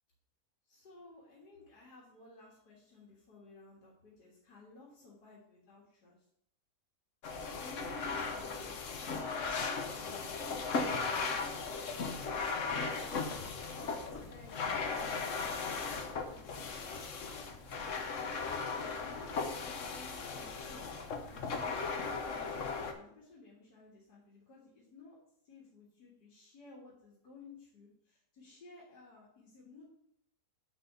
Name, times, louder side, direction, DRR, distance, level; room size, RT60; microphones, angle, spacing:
voice 1, 0.7-6.3 7.6-8.8 9.3-12.1 13.6-16.8 18.2-20.9 21.2-25.2 25.4-29.8, left 3 dB, 85° left, -5 dB, 2.3 m, -55 dB
sound 1, 7.2-22.9, left 4 dB, 55° left, 1.2 m, -37 dB
7.9 x 4.0 x 6.8 m, 0.71 s
omnidirectional pair, 1.7 m